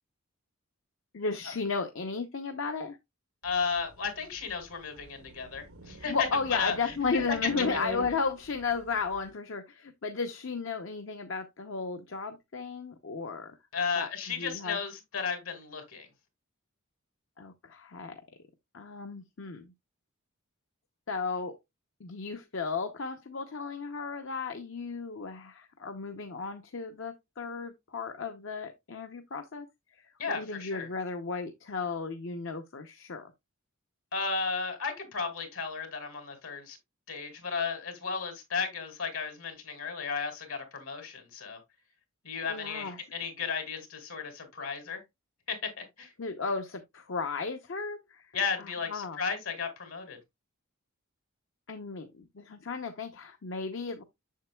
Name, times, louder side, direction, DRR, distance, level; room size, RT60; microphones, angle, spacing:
voice 1, 1.1-3.0 6.1-13.5 14.0-14.8 17.4-18.2 18.7-19.7 21.1-21.6 22.0-29.7 29.9-33.3 42.5-43.0 46.2-49.2 51.7-54.0, left 4 dB, 65° left, 0.7 m, -34 dB
voice 2, 3.4-7.4 13.7-16.1 30.2-30.9 34.1-36.8 37.1-41.6 42.2-45.0 45.5-46.1 48.3-50.2, left 5 dB, 80° left, 2.4 m, -34 dB
sound 1, 3.4-9.3, right 2 dB, 90° right, 1.1 m, -44 dB
7.4 x 6.8 x 2.3 m
head